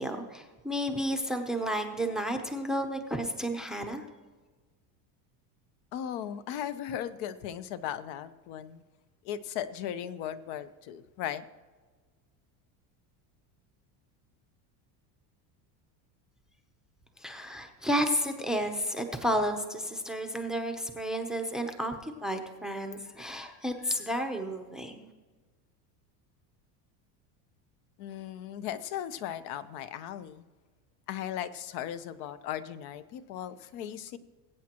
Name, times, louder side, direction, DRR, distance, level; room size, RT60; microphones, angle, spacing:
voice 1, 0.0-4.0 17.2-25.1, equal, ahead, 5 dB, 0.6 m, -32 dB
voice 2, 5.9-8.8 9.2-11.4 28.0-30.4 31.1-34.2, left 10 dB, 55° left, 13 dB, 0.8 m, -37 dB
21.5 x 8.5 x 2.9 m, 1.4 s
cardioid pair, 145°, 45 cm